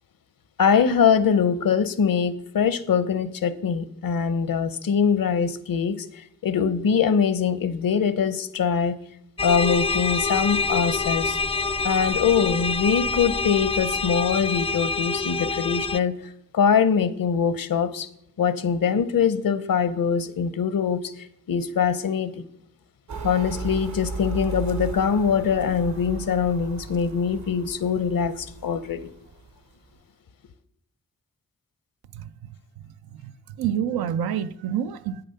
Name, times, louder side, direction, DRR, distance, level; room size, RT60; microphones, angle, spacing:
voice 1, 0.6-9.0 9.4-11.4 11.8-18.1 18.4-21.1 21.5-22.5 23.2-29.0, left 6 dB, 70° left, 0.8 m, -23 dB
sound 1, 9.4-16.0, left 4 dB, 15° left, 0.3 m, -26 dB
sound 2, 23.1-29.6, right 4 dB, 50° right, 0.8 m, -36 dB
voice 2, 32.1-32.5 33.1-33.3 33.6-35.2, right 9 dB, 85° right, 0.5 m, -28 dB
8.4 x 6.7 x 5.6 m
cardioid pair, 40°, 36 cm